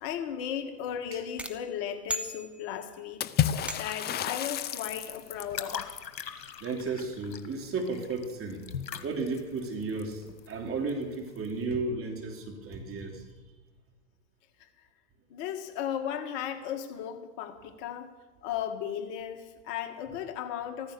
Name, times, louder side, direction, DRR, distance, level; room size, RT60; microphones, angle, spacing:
voice 1, 0.0-3.2 3.5-5.8 14.6-14.9 15.3-18.1 18.4-20.9, left 9 dB, 50° left, 6 dB, 1.8 m, -36 dB
sound 1, 1.4-3.0 3.7-4.2, equal, ahead, 1.1 m, -38 dB
Water / Splash splatter, 3.2-5.6, left 10 dB, 20° left, 0.5 m, -30 dB
sound 2, 4.9-11.6, left 7 dB, 90° left, 1.4 m, -42 dB
voice 2, 6.6-8.7 9.0-13.3, right 3 dB, 25° right, 2 dB, 3.1 m, -34 dB
14.5 x 14.5 x 6.8 m, 1.2 s
hypercardioid pair, 105°, 50 cm